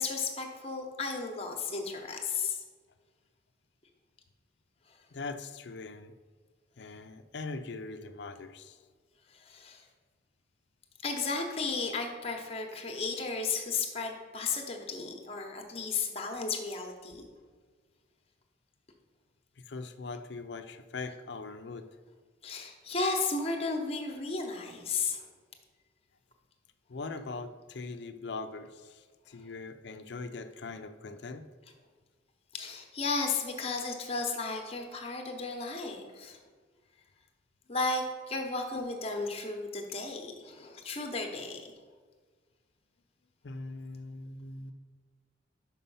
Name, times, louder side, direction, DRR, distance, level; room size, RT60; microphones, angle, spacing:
voice 1, 0.0-2.6 9.4-9.8 11.0-17.2 22.4-25.2 32.5-36.4 37.7-41.7, left 4 dB, 30° left, 3 dB, 0.9 m, -34 dB
voice 2, 5.1-6.1 6.8-8.8 19.6-21.9 26.9-31.5 43.4-44.7, left 3 dB, 60° left, 8 dB, 0.5 m, -41 dB
6.0 x 5.5 x 5.5 m, 1.5 s
head